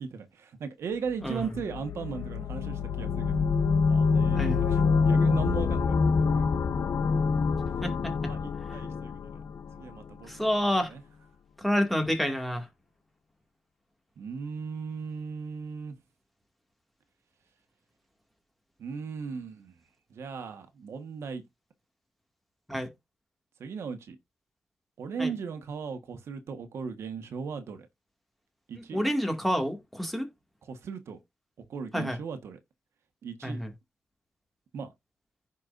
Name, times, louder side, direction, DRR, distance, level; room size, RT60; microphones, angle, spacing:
voice 1, 0.0-3.3 3.9-6.6 8.2-9.4 9.8-10.5 10.8-11.0 14.2-15.9 18.8-19.7 20.1-21.4 23.6-24.2 25.0-27.9 28.7-29.0 30.6-31.2 31.6-32.6 33.2-33.6 34.7-34.9, right 5 dB, 80° right, 1.4 m, -37 dB
sound 1, 1.2-10.1, left 5 dB, 80° left, 1.0 m, -26 dB
voice 2, 4.3-4.6 7.8-8.3 10.3-10.9 11.6-12.6 22.7-22.9 25.2-25.3 28.8-30.3 31.9-32.2 33.4-33.7, equal, ahead, 2.2 m, -29 dB
15.0 x 5.4 x 2.6 m
wide cardioid pair, 130°, 4 cm